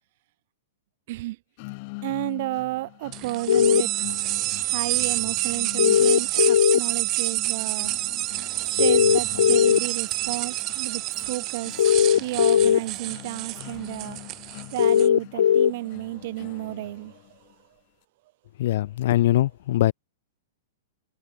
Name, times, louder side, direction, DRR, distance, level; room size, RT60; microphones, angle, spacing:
voice 1, 1.1-1.4 2.0-4.0 4.5-7.9 8.6-14.2 14.7-17.4, right 18 dB, 55° right, 4.9 m, -32 dB
sound 1, 1.6-17.5, left 30 dB, 45° left, 6.8 m, -43 dB
sound 2, 3.1-15.1, right 19 dB, 35° right, 1.1 m, -28 dB
sound 3, 3.5-3.8 5.8-6.8 8.8-9.8 11.8-12.8 14.8-15.7, left 9 dB, 80° left, 1.1 m, -18 dB
voice 2, 18.6-19.9, left 14 dB, 60° left, 1.7 m, -22 dB
hypercardioid pair, 135°, 0 cm